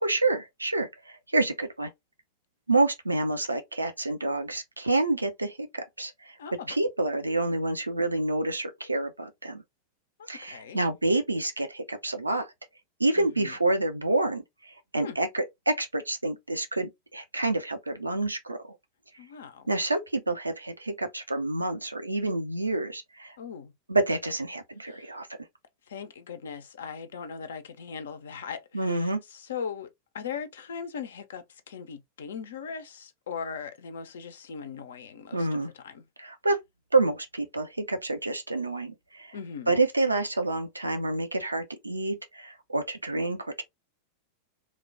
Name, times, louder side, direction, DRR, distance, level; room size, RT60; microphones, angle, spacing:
voice 1, 0.0-1.9 2.7-6.4 6.7-9.6 10.3-12.5 13.0-18.8 19.7-23.4 23.9-25.3 28.7-29.2 35.3-35.7 36.2-36.6 36.9-39.4 39.7-43.6, right 2 dB, 80° right, 0.4 m, -28 dB
voice 2, 6.4-6.7 10.2-10.8 13.2-13.5 15.0-15.2 19.2-19.7 23.4-23.7 24.9-25.1 25.9-29.9 30.1-36.0 39.3-39.8, left 6 dB, 65° left, 0.5 m, -39 dB
3.0 x 2.1 x 2.5 m
figure-of-eight pair, 90°, 0 cm